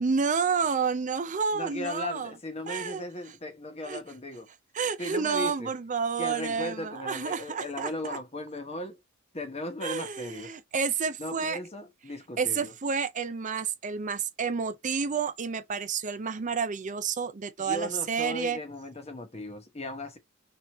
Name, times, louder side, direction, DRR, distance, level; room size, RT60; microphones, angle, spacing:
voice 1, 0.0-2.3 2.7-3.0 3.9-4.0 4.7-8.2 9.8-11.6 12.4-18.6, right 5 dB, 35° right, 0.5 m, -30 dB
voice 2, 1.5-4.5 5.0-5.7 6.2-9.0 9.3-10.6 11.2-12.7 17.6-20.2, left 1 dB, 30° left, 1.1 m, -37 dB
6.1 x 2.8 x 3.0 m
head